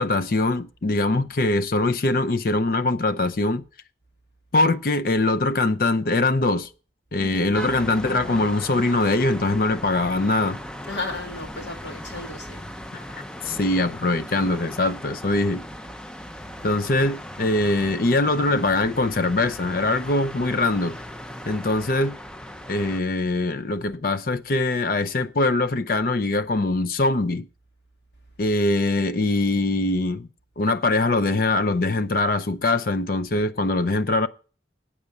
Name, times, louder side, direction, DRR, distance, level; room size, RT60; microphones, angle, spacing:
voice 1, 0.0-3.6 4.5-6.7 7.1-10.6 12.9-15.6 16.6-21.0 21.5-22.2 22.7-27.5 28.4-30.3 30.6-34.3, left 2 dB, 55° left, 0.5 m, -22 dB
voice 2, 7.2-7.7 10.9-12.6 13.6-13.7 16.6-16.8, left 2 dB, 90° left, 2.4 m, -34 dB
sound 1, 7.5-23.0, equal, 5° left, 0.4 m, -38 dB
8.6 x 6.5 x 7.0 m
head